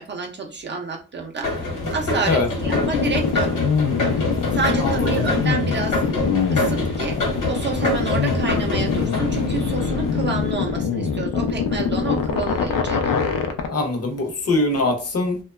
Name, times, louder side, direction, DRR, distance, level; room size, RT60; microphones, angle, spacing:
voice 1, 0.0-3.5 4.5-6.2 6.5-7.2 7.5-13.0, right 4 dB, 35° right, 0.4 m, -29 dB
sound 1, 1.4-10.5, left 1 dB, 65° left, 1.1 m, -26 dB
sound 2, 2.6-13.7, left 6 dB, 90° left, 0.5 m, -23 dB
voice 2, 4.8-5.2 13.7-15.4, left 2 dB, 50° left, 0.6 m, -22 dB
2.8 x 2.2 x 2.2 m
wide cardioid pair, 155°, 33 cm